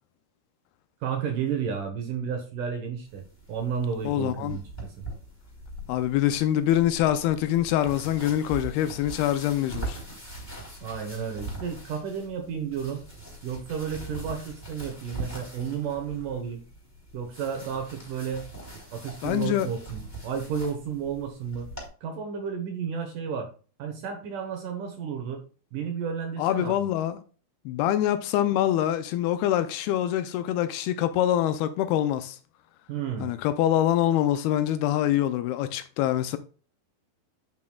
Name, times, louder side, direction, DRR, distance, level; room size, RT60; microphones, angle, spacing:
voice 1, 1.0-3.2 3.5-5.1 10.8-13.0 13.4-16.6 17.1-18.5 18.9-21.7 22.0-23.5 23.8-25.4 25.7-26.8 32.9-33.3, right 7 dB, 70° right, 2.2 m, -32 dB
sound 1, 3.1-21.9, right 2 dB, 5° left, 2.4 m, -42 dB
voice 2, 4.0-4.6 5.9-10.0 19.2-19.7 26.4-27.2 27.7-32.4 33.2-36.4, left 12 dB, 80° left, 2.4 m, -25 dB
9.5 x 5.9 x 2.3 m
omnidirectional pair, 4.6 m